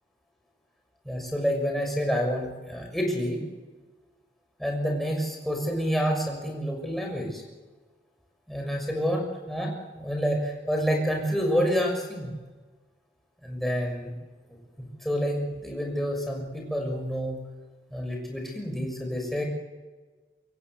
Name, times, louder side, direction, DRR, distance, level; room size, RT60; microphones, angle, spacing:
voice 1, 1.0-3.4 4.6-7.4 8.5-12.3 13.4-14.1 15.0-17.4 17.9-19.4, equal, ahead, 1 dB, 6.3 m, -28 dB
25.5 x 23.0 x 8.1 m, 1.3 s
head